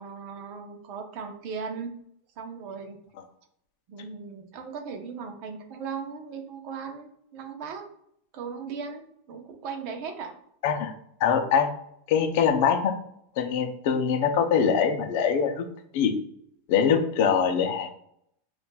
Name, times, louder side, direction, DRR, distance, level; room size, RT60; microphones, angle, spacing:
voice 1, 0.0-1.9 2.4-3.0 3.9-7.9 8.3-10.3, right 5 dB, 45° right, 4 dB, 0.7 m, -37 dB
voice 2, 11.2-11.7 12.1-12.9 13.4-15.6 15.9-16.1 16.7-17.9, left 7 dB, 50° left, 6 dB, 0.6 m, -23 dB
5.6 x 2.4 x 2.3 m, 0.70 s
supercardioid pair, 160°, 0 cm